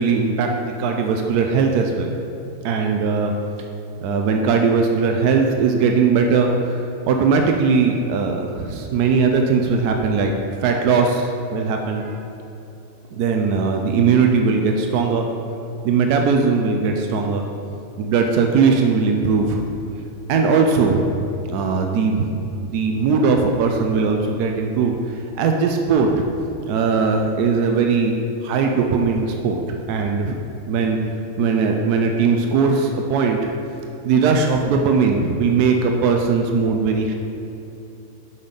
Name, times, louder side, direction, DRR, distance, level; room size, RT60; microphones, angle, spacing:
voice 1, 0.0-2.1 2.6-3.3 4.0-10.3 10.6-12.2 13.1-15.3 15.8-17.4 18.0-19.6 20.3-21.1 21.5-22.3 22.6-26.2 26.7-28.1 28.4-30.4 30.7-31.0 31.4-33.5 34.0-37.1, right 5 dB, 85° right, 3 dB, 1.1 m, -19 dB
6.4 x 5.6 x 5.1 m, 2.8 s
omnidirectional pair, 1.6 m